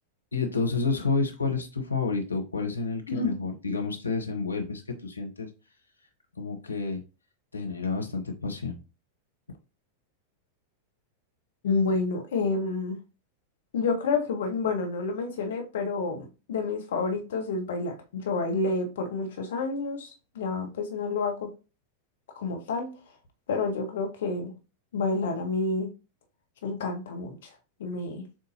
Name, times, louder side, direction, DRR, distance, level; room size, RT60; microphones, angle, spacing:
voice 1, 0.3-5.5 6.3-7.0 7.5-8.8, left 4 dB, 80° left, 0.9 m, -30 dB
voice 2, 11.6-13.0 13.7-21.5 22.4-22.9 23.5-24.5 24.9-25.9 26.6-27.5 27.8-28.2, left 3 dB, 60° left, 1.2 m, -29 dB
7.2 x 2.6 x 2.8 m
figure-of-eight pair, 90°, 0 cm